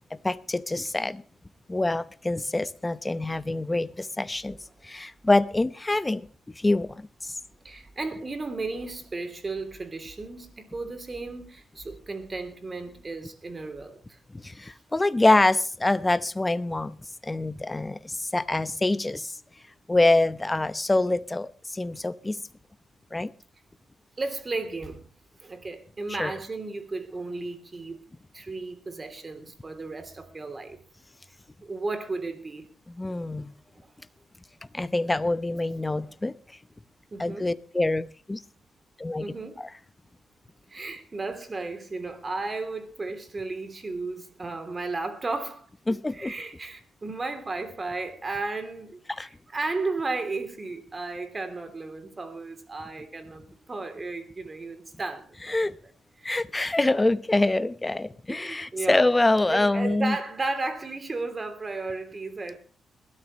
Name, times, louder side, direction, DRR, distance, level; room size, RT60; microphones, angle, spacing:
voice 1, 0.1-1.2 1.7-4.6 4.8-6.3 6.6-7.4 14.3-17.0 17.2-19.4 19.9-22.4 23.1-23.3 26.2-26.3 33.0-33.5 34.7-36.3 37.2-38.4 39.0-39.2 39.6-39.7 45.9-46.3 49.1-49.3 55.5-55.8 56.2-60.2, left 2 dB, 15° left, 0.8 m, -25 dB
voice 2, 7.6-14.2 24.2-25.0 25.4-28.0 28.3-30.8 31.6-32.6 33.8-33.9 35.9-36.1 37.1-37.5 39.2-39.6 40.7-45.7 46.1-55.6 56.2-56.4 58.3-59.1 59.5-62.6, right 3 dB, 30° right, 3.0 m, -34 dB
21.0 x 13.5 x 3.1 m
cardioid pair, 90°, 0 cm